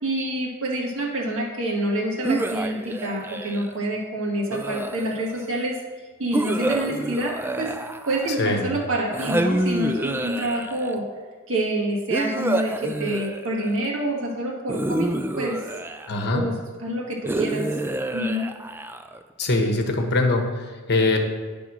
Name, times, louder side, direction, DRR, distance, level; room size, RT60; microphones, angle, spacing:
voice 1, 0.0-5.8 6.2-7.7 8.1-11.0 11.5-15.6 16.3-16.5 16.8-17.6 18.1-18.5, right 1 dB, 60° right, -2 dB, 1.7 m, -27 dB
sound 1, 2.2-3.8 4.5-5.4 6.3-8.5 9.1-11.0 12.1-13.9 14.7-16.3 17.3-19.2, right 2 dB, 10° right, 0.3 m, -28 dB
voice 2, 8.4-8.7 16.1-16.5 19.4-21.2, left 2 dB, 50° left, 3 dB, 1.0 m, -22 dB
10.0 x 3.5 x 6.0 m, 1.5 s
head